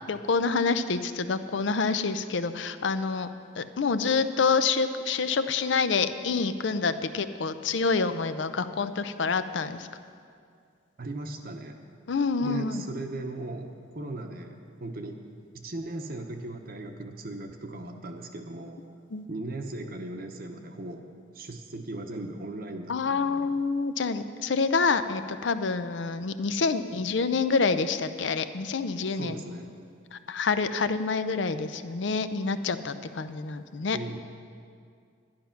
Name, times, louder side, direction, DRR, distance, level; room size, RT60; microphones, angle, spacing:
voice 1, 0.1-3.3 3.6-9.9 12.1-12.8 19.1-19.2 22.9-29.4 30.1-34.0, left 4 dB, 65° left, 11 dB, 0.5 m, -27 dB
voice 2, 11.0-11.8 12.4-15.2 15.5-18.8 19.3-21.1 21.3-23.5 29.1-29.8 33.9-34.2, right 2 dB, 50° right, 4 dB, 0.8 m, -38 dB
11.5 x 10.5 x 5.8 m, 2.3 s
head